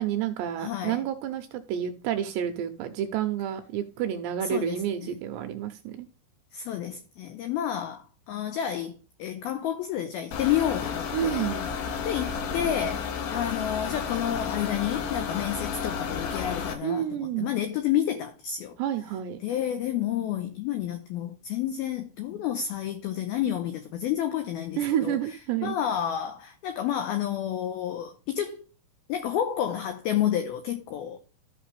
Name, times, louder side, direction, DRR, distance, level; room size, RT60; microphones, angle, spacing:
voice 1, 0.0-6.1 11.1-11.7 16.8-17.5 18.8-19.4 24.8-25.8, right 10 dB, 80° right, 2.5 m, -29 dB
voice 2, 0.6-1.0 4.4-5.2 6.5-11.5 12.0-18.8 19.4-25.2 25.6-28.6 29.1-31.2, left 10 dB, 90° left, 2.1 m, -30 dB
sound 1, 10.3-16.7, left 6 dB, 75° left, 3.1 m, -32 dB
13.5 x 6.0 x 3.3 m
omnidirectional pair, 5.6 m